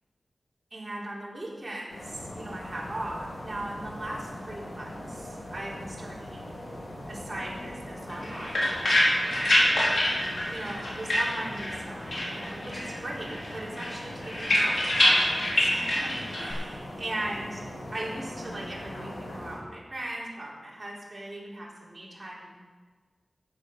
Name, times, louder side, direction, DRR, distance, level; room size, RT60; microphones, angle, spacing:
voice 1, 0.7-6.5 7.1-8.7 10.5-17.6 17.9-22.5, right 1 dB, 25° right, -6 dB, 4.3 m, -38 dB
sound 1, 1.9-19.6, left 1 dB, 90° left, 4.1 m, -41 dB
sound 2, 8.1-11.8 12.1-13.0 13.3-16.5, left 1 dB, 75° left, 4.4 m, -25 dB
14.5 x 8.4 x 6.7 m, 1.4 s
wide cardioid pair, 105°, 0 cm